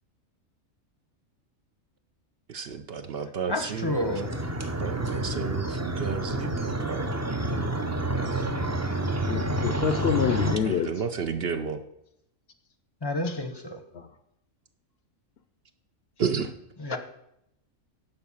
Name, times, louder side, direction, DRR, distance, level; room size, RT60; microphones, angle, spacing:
voice 1, 2.5-3.9 4.8-7.1 7.5-7.7 10.8-11.8 16.2-16.5, right 6 dB, 60° right, 8 dB, 0.8 m, -31 dB
voice 2, 3.5-4.3 13.0-13.8 16.8-17.0, left 1 dB, 25° left, 6 dB, 0.7 m, -29 dB
sound 1, 3.6-10.6, right 1 dB, 20° right, 0.5 m, -29 dB
voice 3, 9.3-11.0 13.2-13.4 13.9-14.1 16.9-17.0, left 7 dB, 60° left, 10 dB, 0.8 m, -27 dB
11.0 x 4.7 x 7.2 m, 0.79 s
omnidirectional pair, 1.3 m